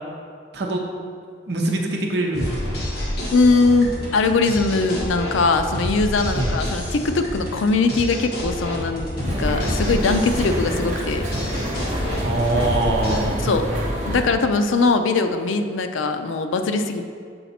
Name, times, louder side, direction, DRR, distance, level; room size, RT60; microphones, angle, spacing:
voice 1, 1.5-2.7 6.3-6.6 12.2-13.8, right 2 dB, 60° right, 0 dB, 0.8 m, -23 dB
sound 1, 2.3-13.2, equal, 55° left, 1.6 m, -29 dB
voice 2, 3.3-11.2 13.4-13.7 14.1-17.0, left 3 dB, 90° left, 7 dB, 0.5 m, -21 dB
sound 2, 9.2-14.3, equal, 40° right, 1.0 m, -27 dB
7.0 x 4.1 x 4.2 m, 2.2 s
head